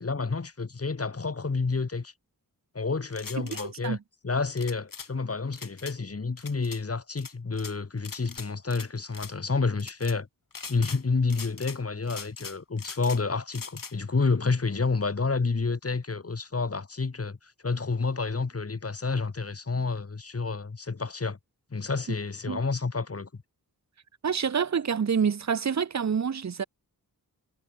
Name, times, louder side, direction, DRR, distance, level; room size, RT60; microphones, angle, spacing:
voice 1, 0.0-2.1 2.7-4.0 4.2-10.3 10.7-21.4 21.7-23.3, left 4 dB, 40° left, 2.4 m, -29 dB
sound 1, 3.1-3.7 4.6-5.1 5.5-5.9 6.4-6.8 7.2-7.7 8.0-8.9 9.1-9.3 9.8-10.1 10.5-11.0 11.3-11.8 12.1-13.2 13.5-13.9, left 5 dB, 60° left, 4.2 m, -41 dB
voice 2, 3.4-4.0 22.5-22.6 24.2-26.6, right 6 dB, 50° right, 0.9 m, -27 dB
wide cardioid pair, 105°, 37 cm